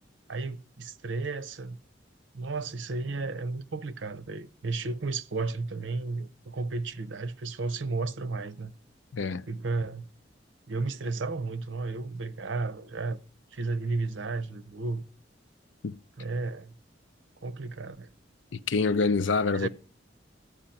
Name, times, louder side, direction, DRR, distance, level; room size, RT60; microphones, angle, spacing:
voice 1, 0.3-1.8 2.3-8.7 9.5-10.1 10.7-13.2 13.5-15.0 16.2-16.7 17.4-18.1 19.5-19.7, right 3 dB, 85° right, 0.7 m, -33 dB
voice 2, 9.1-9.5 15.8-15.9 18.5-19.7, left 4 dB, 85° left, 0.5 m, -26 dB
13.5 x 4.9 x 8.9 m
head